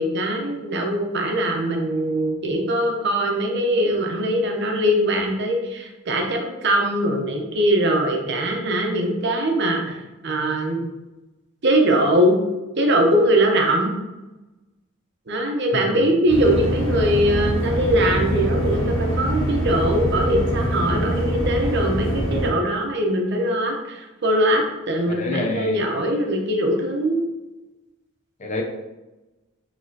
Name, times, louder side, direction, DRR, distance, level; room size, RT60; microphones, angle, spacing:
voice 1, 0.0-10.0 10.2-10.8 11.6-12.4 12.8-13.9 15.3-27.2, right 1 dB, 55° right, 2 dB, 0.8 m, -21 dB
sound 1, 16.3-22.5, equal, 70° left, 1.5 m, -24 dB
voice 2, 25.1-25.8 28.4-28.6, left 2 dB, 35° left, 1 dB, 0.6 m, -27 dB
5.1 x 3.0 x 2.8 m, 1.1 s
head